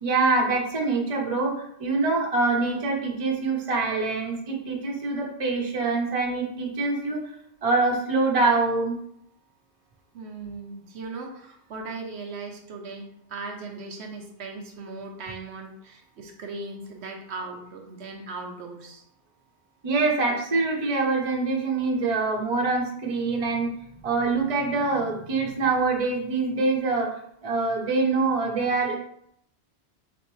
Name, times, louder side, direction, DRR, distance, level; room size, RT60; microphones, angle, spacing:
voice 1, 0.0-1.5 1.8-7.2 7.6-9.0 19.8-23.7 24.0-27.1 27.4-28.9, right 3 dB, 35° right, -1 dB, 0.8 m, -24 dB
voice 2, 10.1-19.0, right 3 dB, 75° right, 2 dB, 1.0 m, -38 dB
4.2 x 3.8 x 3.1 m, 0.70 s
omnidirectional pair, 1.1 m